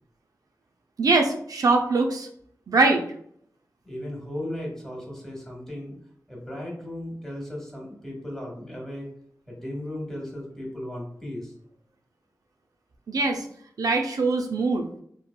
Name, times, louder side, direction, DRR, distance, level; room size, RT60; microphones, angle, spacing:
voice 1, 1.0-2.3 2.7-3.0 13.1-13.4 13.8-14.8, right 3 dB, 75° right, 3 dB, 0.3 m, -22 dB
voice 2, 3.8-6.0 6.3-9.1 9.5-11.5, left 1 dB, 5° left, -2 dB, 1.2 m, -36 dB
2.8 x 2.2 x 2.2 m, 0.66 s
cardioid pair, 40°, 6 cm